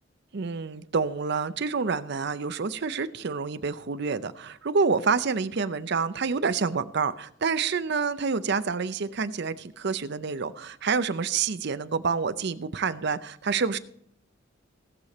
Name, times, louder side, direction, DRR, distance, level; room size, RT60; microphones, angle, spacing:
voice 1, 0.3-13.8, right 5 dB, 60° right, 13 dB, 0.6 m, -28 dB
17.5 x 6.6 x 4.2 m, 0.67 s
head